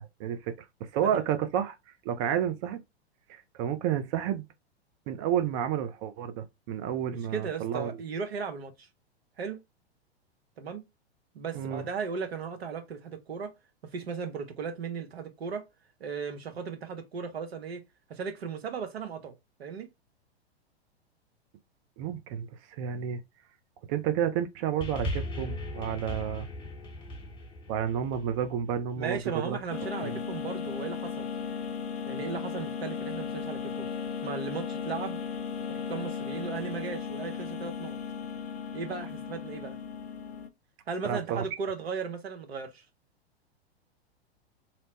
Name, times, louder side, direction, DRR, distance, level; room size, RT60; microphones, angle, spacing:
voice 1, 0.2-0.5 0.9-1.8 2.0-2.8 3.3-4.5 5.1-7.9 11.5-11.9 22.0-23.2 23.9-26.5 27.7-29.6 30.0-30.2 41.0-41.4, right 9 dB, 30° right, 0.4 m, -30 dB
voice 2, 7.3-8.9 9.4-9.6 10.6-10.8 11.3-13.5 13.8-15.6 16.0-17.8 18.1-19.9 29.0-31.3 32.1-33.9 34.2-35.2 35.7-38.0 38.7-39.8 40.9-42.9, right 5 dB, 70° right, 0.9 m, -36 dB
sound 1, 24.8-29.4 30.2-30.3, left 1 dB, 15° left, 0.8 m, -38 dB
sound 2, 29.7-40.5, left 6 dB, 70° left, 0.6 m, -36 dB
2.8 x 2.0 x 2.9 m
figure-of-eight pair, 100°, 32 cm